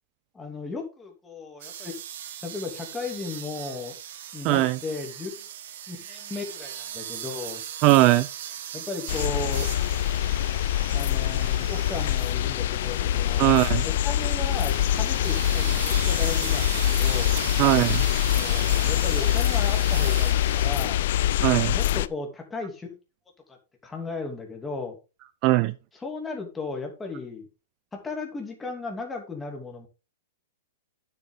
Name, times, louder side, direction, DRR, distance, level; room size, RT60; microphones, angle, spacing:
voice 1, 0.3-1.9 2.4-3.9 4.3-5.5 5.9-7.6 8.7-9.7 10.9-13.6 13.8-17.4 18.3-21.0 21.7-23.0 23.5-23.6 23.8-25.0 25.9-27.5 27.9-29.9, left 3 dB, 10° left, 2 dB, 2.7 m, -35 dB
sound 1, 1.6-20.7, right 10 dB, 60° right, 1.4 m, -39 dB
voice 2, 4.4-4.8 7.8-8.3 13.4-13.8 17.6-18.0 21.4-21.7 25.4-25.7, right 17 dB, 35° right, 16 dB, 0.5 m, -19 dB
sound 2, 9.1-22.1, left 12 dB, 60° left, 0.6 m, -24 dB
9.7 x 8.1 x 3.8 m, 0.29 s
hypercardioid pair, 155°, 0 cm